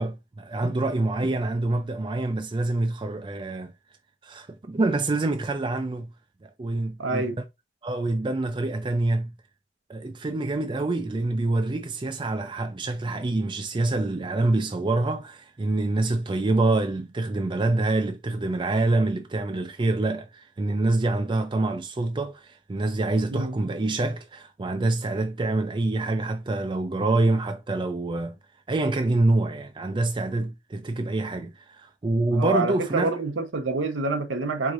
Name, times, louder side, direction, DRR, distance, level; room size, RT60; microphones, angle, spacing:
voice 1, 0.0-3.7 4.2-6.1 6.4-7.2 7.8-9.3 9.9-28.4 28.7-33.1, right 2 dB, 25° right, 0.4 m, -26 dB
voice 2, 7.0-7.4 23.3-23.6 32.3-34.7, right 3 dB, 90° right, 0.8 m, -27 dB
4.7 x 3.6 x 2.5 m
head